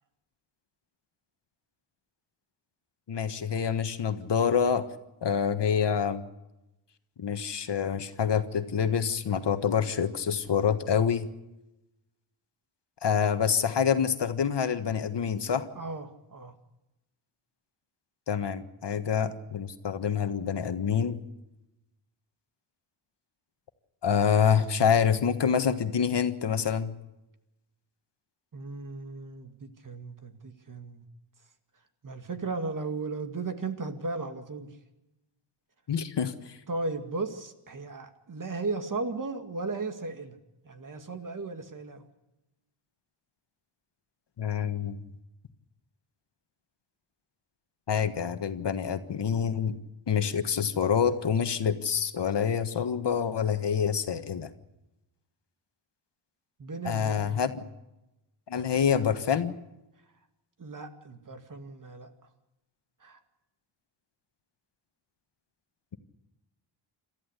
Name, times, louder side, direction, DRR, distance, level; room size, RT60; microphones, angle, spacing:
voice 1, 3.1-4.9 5.2-6.2 7.2-11.3 13.0-15.7 18.3-21.2 24.0-26.9 35.9-36.6 44.4-45.0 47.9-49.7 50.1-54.5 56.8-57.5 58.5-59.5, left 7 dB, 55° left, 9 dB, 1.5 m, -26 dB
voice 2, 15.8-16.6 28.5-31.0 32.0-34.7 36.7-40.4 40.6-42.1 56.6-57.4 60.6-62.1 63.0-63.2, right 3 dB, 40° right, 7 dB, 2.2 m, -36 dB
28.0 x 14.0 x 8.2 m, 0.95 s
wide cardioid pair, 120°, 50 cm